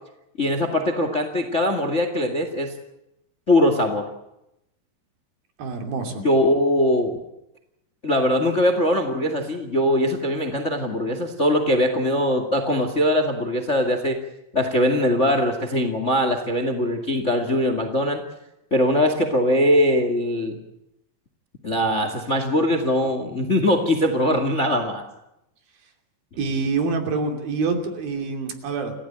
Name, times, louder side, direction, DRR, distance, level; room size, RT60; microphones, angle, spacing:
voice 1, 0.4-2.7 3.5-4.0 6.2-7.2 8.0-14.2 14.5-18.2 18.7-20.6 21.6-25.0, left 1 dB, 25° left, 7 dB, 1.7 m, -21 dB
voice 2, 5.6-6.3 26.4-28.9, right 4 dB, 60° right, 5 dB, 4.5 m, -26 dB
28.5 x 16.0 x 9.0 m, 0.86 s
omnidirectional pair, 4.8 m